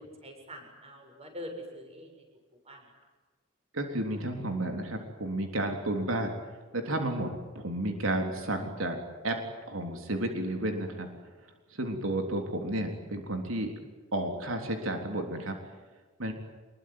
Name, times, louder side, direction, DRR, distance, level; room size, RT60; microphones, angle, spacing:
voice 1, 0.0-2.1 2.6-2.9, equal, 30° right, 3 dB, 7.5 m, -44 dB
voice 2, 3.7-6.3 6.7-9.0 9.2-9.4 9.7-11.1 11.7-13.7 14.1-15.6 16.2-16.3, right 1 dB, 85° right, 4 dB, 3.7 m, -32 dB
26.0 x 22.0 x 9.5 m, 1.3 s
head